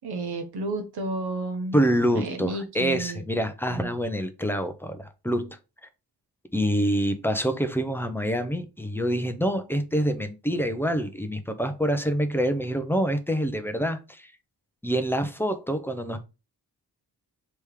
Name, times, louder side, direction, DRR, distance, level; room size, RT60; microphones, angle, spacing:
voice 1, 0.0-1.8 2.1-3.2 3.7-3.9, right 2 dB, 75° right, 1.1 m, -32 dB
voice 2, 1.7-5.6 6.5-14.3 14.8-16.2, equal, 5° left, 0.5 m, -26 dB
3.4 x 3.0 x 4.8 m
wide cardioid pair, 145°, 39 cm